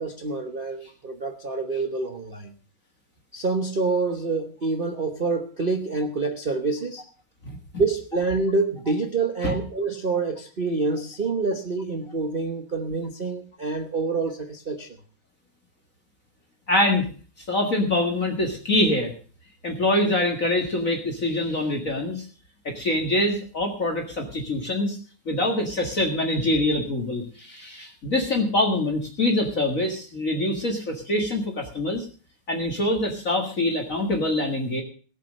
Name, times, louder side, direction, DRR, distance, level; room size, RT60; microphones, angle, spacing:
voice 1, 0.0-2.5 3.3-7.0 7.8-15.0, right 3 dB, 35° right, 5 dB, 0.9 m, -27 dB
voice 2, 16.7-17.1 17.4-19.1 19.6-22.3 22.6-25.0 25.3-32.1 32.5-34.8, left 1 dB, 40° left, 2 dB, 2.1 m, -24 dB
18.0 x 7.4 x 6.5 m, 0.41 s
omnidirectional pair, 2.3 m